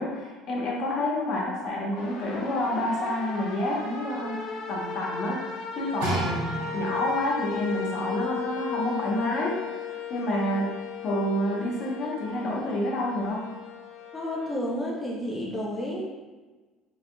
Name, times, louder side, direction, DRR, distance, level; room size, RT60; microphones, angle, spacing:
voice 1, 0.0-5.4 5.7-9.6 9.8-10.7 11.0-13.4, left 1 dB, 40° left, -3 dB, 0.8 m, -28 dB
sound 1, 1.9-14.6, left 6 dB, 65° left, 0.5 m, -37 dB
sound 2, 6.0-7.3 8.0-8.1, right 1 dB, 85° right, 1.4 m, -31 dB
voice 2, 14.1-16.0, equal, 10° left, -4 dB, 0.6 m, -31 dB
3.7 x 3.4 x 2.2 m, 1.3 s
cardioid pair, 170°, 0 cm